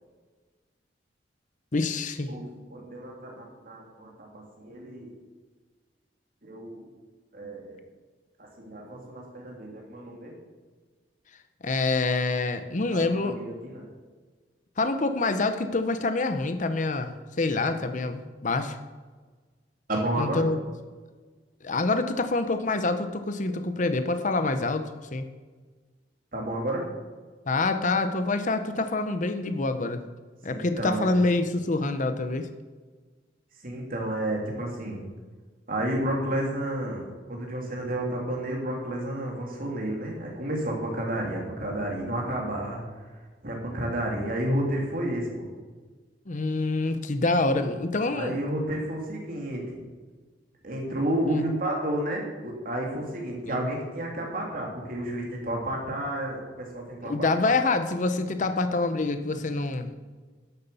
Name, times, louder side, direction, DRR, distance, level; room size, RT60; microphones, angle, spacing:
voice 1, 1.7-2.3 11.6-13.4 14.8-17.1 17.4-18.8 20.2-20.6 21.6-25.2 27.5-30.0 30.4-32.5 46.3-48.4 51.3-51.4 53.5-53.7 57.0-59.9, left 3 dB, 45° left, 9 dB, 0.8 m, -26 dB
voice 2, 2.7-5.1 6.4-6.8 7.3-7.8 8.4-10.3 12.8-13.9 19.9-20.5 26.3-26.8 30.5-31.2 33.6-35.0 35.7-42.8 43.4-45.5 48.1-49.8 50.6-57.3, right 1 dB, 50° right, -1 dB, 3.1 m, -31 dB
11.0 x 8.2 x 6.9 m, 1.4 s
head